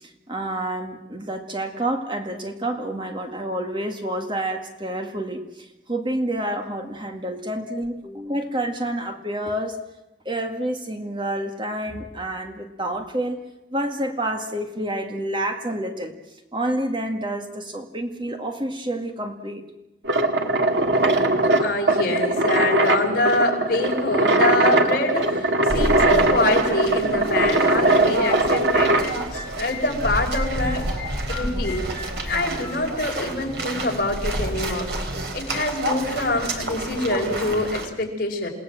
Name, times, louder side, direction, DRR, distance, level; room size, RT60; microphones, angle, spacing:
voice 1, 0.0-9.8 10.3-13.4 13.7-16.1 16.5-19.6, right 1 dB, 25° right, 4 dB, 2.0 m, -28 dB
sound 1, 20.0-29.1, right 2 dB, 90° right, 2.2 m, -20 dB
voice 2, 21.5-29.0 29.3-30.9 31.3-31.9 32.2-34.9 35.3-38.5, left 2 dB, 55° left, 1 dB, 5.1 m, -25 dB
sound 2, 25.7-37.9, right 1 dB, 70° right, 3.8 m, -29 dB
sound 3, 29.0-32.8, left 3 dB, 10° left, 4.7 m, -39 dB
28.5 x 18.5 x 7.7 m, 0.95 s
head